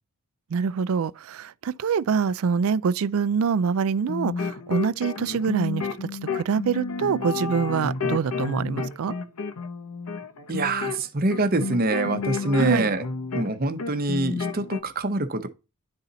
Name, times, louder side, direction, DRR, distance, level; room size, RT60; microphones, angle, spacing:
voice 1, 0.5-9.1 12.5-12.9, right 6 dB, 70° right, 0.4 m, -25 dB
sound 1, 4.0-13.5 13.8-14.8, left 4 dB, 80° left, 0.8 m, -31 dB
voice 2, 10.5-13.1 13.3-15.5, right 2 dB, 40° right, 0.8 m, -25 dB
10.5 x 4.1 x 4.0 m
head